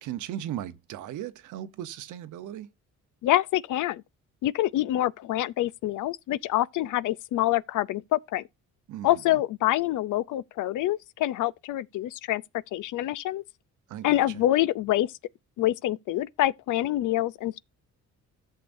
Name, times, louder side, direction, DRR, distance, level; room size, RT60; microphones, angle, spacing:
voice 1, 0.0-2.7 8.9-9.4 13.9-14.4, right 12 dB, 80° right, 1.0 m, -37 dB
voice 2, 3.2-4.0 4.4-8.4 9.0-12.4 12.7-13.4 14.0-15.1 15.6-17.6, left 14 dB, 80° left, 0.6 m, -26 dB
14.0 x 6.7 x 2.6 m
cardioid pair, 90°, 30 cm